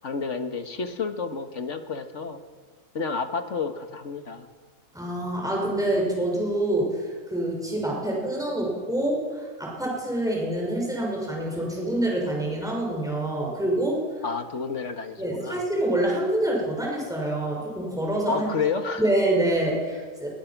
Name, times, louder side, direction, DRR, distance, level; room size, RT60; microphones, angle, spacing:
voice 1, 0.0-2.4 2.9-4.5 14.2-15.6 18.3-19.1, left 5 dB, 50° left, 7 dB, 1.8 m, -30 dB
voice 2, 4.9-14.0 15.2-18.5 19.0-20.3, right 1 dB, ahead, -3 dB, 6.3 m, -26 dB
23.0 x 22.0 x 6.1 m, 1.5 s
omnidirectional pair, 1.6 m